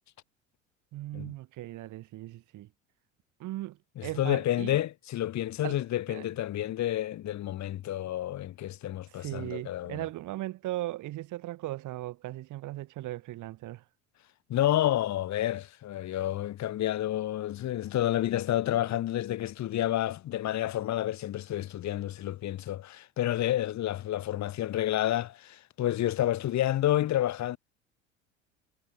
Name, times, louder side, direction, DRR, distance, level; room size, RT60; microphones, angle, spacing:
voice 1, 0.9-2.7 3.4-4.8 5.6-5.8 6.1-6.3 9.1-13.8, right 16 dB, 50° right, 7.4 m, -38 dB
voice 2, 4.0-10.0 14.5-27.6, left 13 dB, 45° left, 7.7 m, -30 dB
figure-of-eight pair, 70°, 39 cm